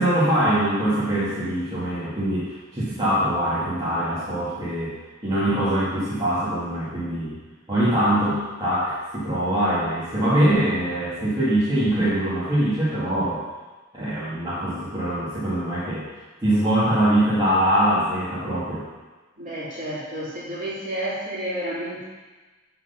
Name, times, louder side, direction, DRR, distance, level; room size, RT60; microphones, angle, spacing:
voice 1, 0.0-4.9 5.2-7.4 7.7-13.4 13.9-16.1 16.4-18.9, right 1 dB, 20° right, -11 dB, 1.9 m, -23 dB
voice 2, 19.4-22.0, right 1 dB, 45° right, -7 dB, 3.1 m, -30 dB
11.5 x 4.1 x 5.6 m, 1.2 s
head